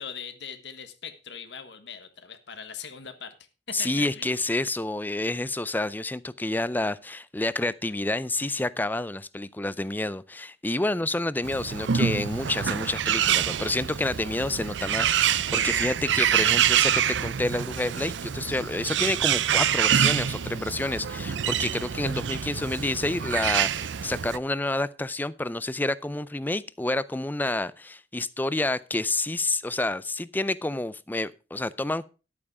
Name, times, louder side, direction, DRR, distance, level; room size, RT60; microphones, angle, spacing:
voice 1, 0.0-3.3 3.7-4.3, left 7 dB, 75° left, 1.5 m, -40 dB
voice 2, 3.7-32.1, left 2 dB, 10° left, 0.4 m, -29 dB
Bird, 11.4-24.4, right 9 dB, 90° right, 0.5 m, -26 dB
11.0 x 8.6 x 4.8 m
head